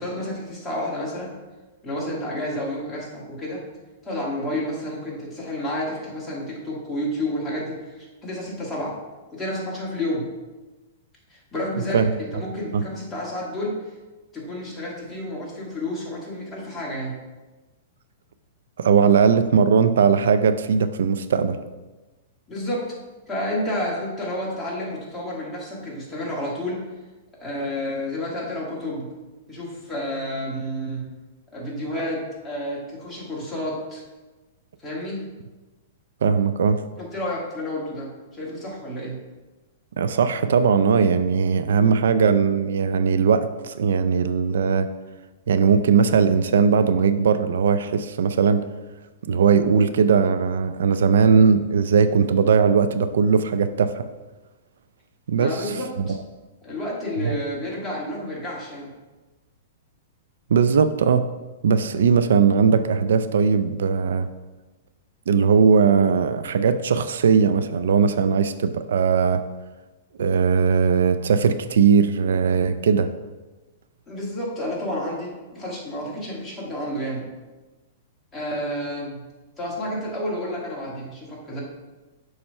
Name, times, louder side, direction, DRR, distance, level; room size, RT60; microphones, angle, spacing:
voice 1, 0.0-1.3 1.8-3.6 4.0-9.0 9.3-10.3 11.3-13.7 14.3-17.1 22.5-22.9 23.3-26.8 27.4-29.1 29.5-31.1 31.5-34.0 34.8-35.2 37.0-39.2 55.4-56.2 56.6-58.9 74.1-77.3 78.3-79.2 79.6-81.6, left 1 dB, 10° left, -5 dB, 1.8 m, -30 dB
voice 2, 18.8-21.6 36.2-36.8 40.0-44.9 45.5-48.7 49.2-54.0 55.3-56.1 57.2-57.4 60.5-61.3 61.6-64.3 65.3-69.4 70.2-73.1, right 6 dB, 80° right, 11 dB, 0.4 m, -19 dB
7.1 x 3.2 x 5.5 m, 1.2 s
hypercardioid pair, 150°, 0 cm